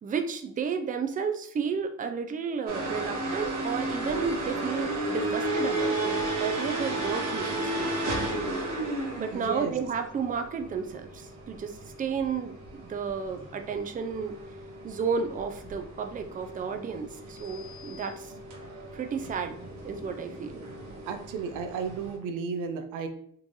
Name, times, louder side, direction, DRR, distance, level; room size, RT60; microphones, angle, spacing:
voice 1, 0.0-8.4 9.2-14.4 14.8-18.3 18.9-19.6 19.8-20.6, right 6 dB, 30° right, 6 dB, 0.4 m, -32 dB
sound 1, 2.7-22.1, right 2 dB, 70° right, 1.1 m, -34 dB
voice 2, 9.3-9.7 21.1-23.1, right 6 dB, 90° right, 7 dB, 0.5 m, -33 dB
3.7 x 2.5 x 3.0 m, 0.67 s
cardioid pair, 90°, 30 cm